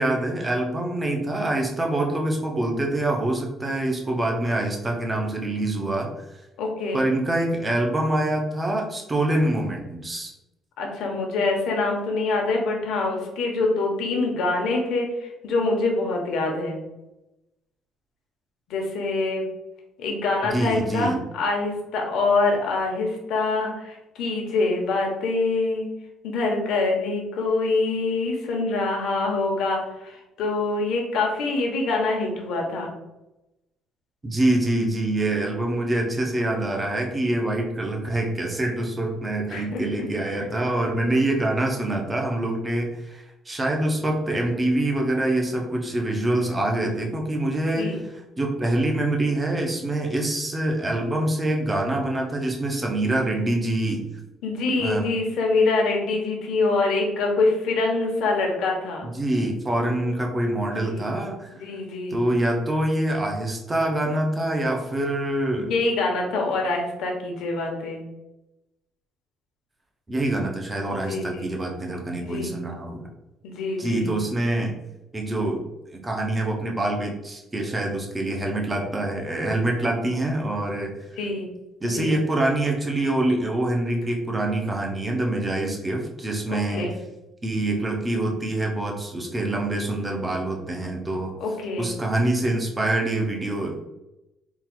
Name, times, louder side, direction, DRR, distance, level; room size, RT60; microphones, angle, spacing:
voice 1, 0.0-6.1 6.9-10.3 20.4-21.2 34.2-48.0 48.4-54.1 54.8-55.1 59.0-61.5 62.1-65.7 70.1-73.1 73.8-74.8 75.1-75.6 75.9-80.9 81.8-86.9 87.4-91.3 91.8-93.8, right 1 dB, 15° right, 1 dB, 0.6 m, -25 dB
voice 2, 6.6-7.0 10.8-16.8 18.7-19.4 20.0-25.9 26.2-32.9 39.5-39.8 47.8-48.0 54.4-59.1 60.7-61.1 61.5-62.2 65.6-68.0 70.9-71.5 72.2-72.5 73.4-74.1 81.2-81.5 81.8-82.2 86.5-86.9 91.4-91.9, left 3 dB, 65° left, 0 dB, 1.0 m, -25 dB
3.7 x 2.4 x 4.4 m, 0.95 s
cardioid pair, 170°, 0 cm